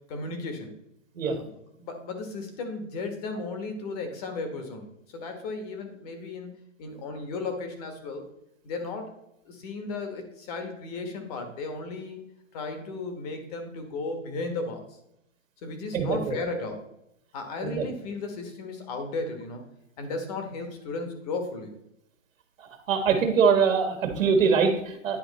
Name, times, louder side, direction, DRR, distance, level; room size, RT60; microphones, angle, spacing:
voice 1, 0.1-0.7 1.2-4.9 5.1-6.5 6.8-8.2 8.6-9.1 9.4-12.2 12.5-14.8 15.6-16.8 17.3-19.6 20.0-21.7, left 3 dB, 30° left, 5 dB, 1.4 m, -35 dB
voice 2, 22.9-25.2, right 6 dB, 75° right, 5 dB, 1.7 m, -23 dB
10.0 x 4.4 x 4.1 m, 0.80 s
hypercardioid pair, 165°, 39 cm